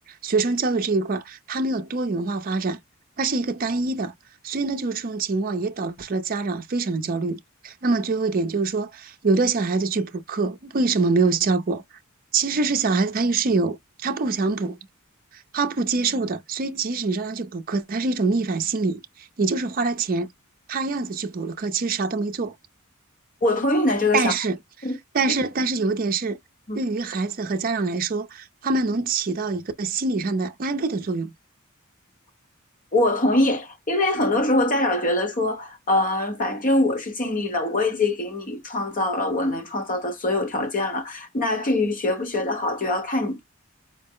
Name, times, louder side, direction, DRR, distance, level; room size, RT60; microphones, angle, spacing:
voice 1, 0.2-2.8 3.2-4.1 4.4-11.8 12.3-14.8 15.3-20.3 20.7-22.5 24.1-24.6 25.1-26.4 26.7-31.3, right 3 dB, 45° right, 0.5 m, -25 dB
voice 2, 23.4-24.3 24.8-25.0 26.7-26.8 32.9-43.4, left 2 dB, 40° left, 1.1 m, -23 dB
4.5 x 2.0 x 3.6 m
head